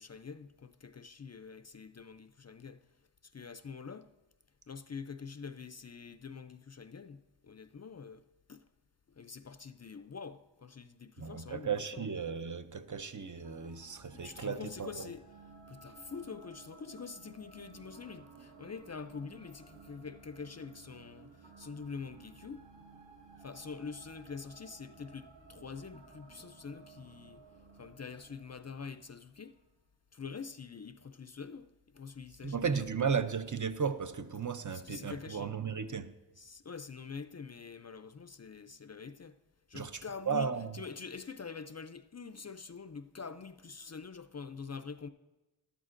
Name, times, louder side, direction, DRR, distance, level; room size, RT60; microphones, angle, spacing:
voice 1, 0.0-2.9 3.2-4.1 4.7-8.7 9.1-12.1 14.1-15.2 15.7-22.7 23.4-27.4 27.8-29.6 30.1-33.2 34.7-35.6 36.4-39.4 39.7-45.1, left 5 dB, 40° left, 0.4 m, -46 dB
voice 2, 11.2-15.1 32.4-36.1 39.7-40.7, right 6 dB, 45° right, 0.6 m, -35 dB
sound 1, 13.4-29.6, right 4 dB, 85° right, 1.4 m, -56 dB
12.5 x 12.0 x 2.5 m
wide cardioid pair, 50°, 43 cm